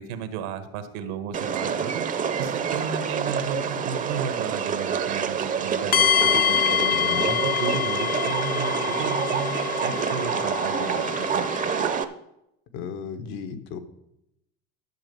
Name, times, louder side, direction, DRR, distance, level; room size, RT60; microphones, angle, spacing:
voice 1, 0.0-2.0 2.4-7.0 7.4-11.5, right 7 dB, 85° right, 9 dB, 1.4 m, -33 dB
sound 1, 1.3-12.0, right 7 dB, 25° right, 0.6 m, -27 dB
sound 2, 5.9-11.9, left 8 dB, 25° left, 0.5 m, -25 dB
voice 2, 6.8-7.4 12.7-13.8, left 5 dB, 80° left, 8 dB, 1.4 m, -34 dB
11.5 x 6.6 x 5.3 m, 0.83 s
cardioid pair, 130°, 34 cm